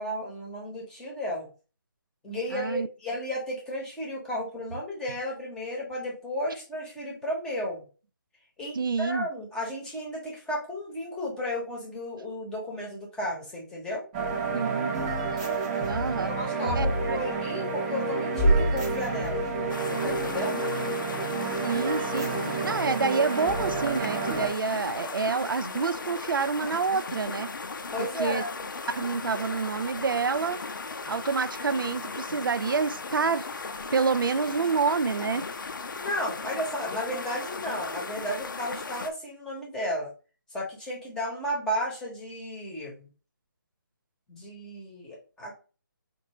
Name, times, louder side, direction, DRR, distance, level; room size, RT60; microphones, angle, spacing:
voice 1, 0.0-1.5 2.2-7.8 8.6-14.1 16.2-19.5 20.0-20.6 27.9-28.5 36.0-40.1 40.5-43.1 44.3-45.6, equal, 5° left, 0.9 m, -33 dB
voice 2, 2.5-2.9 8.8-9.3 14.5-15.0 15.8-16.3 16.7-17.2 21.6-27.5 28.0-28.4 28.9-30.6 31.1-33.5 33.9-35.4, right 5 dB, 90° right, 0.4 m, -28 dB
sound 1, 14.1-24.5, right 3 dB, 20° right, 0.7 m, -28 dB
sound 2, 19.7-39.1, left 4 dB, 75° left, 0.6 m, -37 dB
4.4 x 2.6 x 2.9 m
figure-of-eight pair, 160°, 11 cm